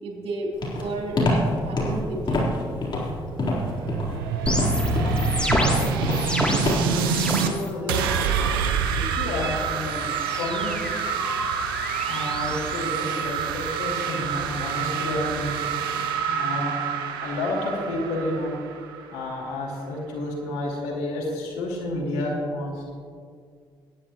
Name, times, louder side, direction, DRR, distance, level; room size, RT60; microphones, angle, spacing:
voice 1, 0.0-2.4, right 2 dB, 55° right, -1 dB, 3.3 m, -32 dB
Walk footsteps, 0.6-7.1, left 1 dB, 40° left, 3.7 m, -25 dB
sound 1, 3.0-7.5 7.9-19.5, right 8 dB, 85° right, 0.6 m, -28 dB
sound 2, 4.5-7.7 8.0-8.5 9.6-13.7, left 1 dB, 10° left, 2.8 m, -29 dB
voice 2, 6.7-8.2 8.9-10.8 12.1-15.5 16.3-16.8 17.2-18.5 19.1-23.0, left 2 dB, 75° left, -3 dB, 2.7 m, -30 dB
19.0 x 10.0 x 3.0 m, 2.1 s
hypercardioid pair, 45°, 11 cm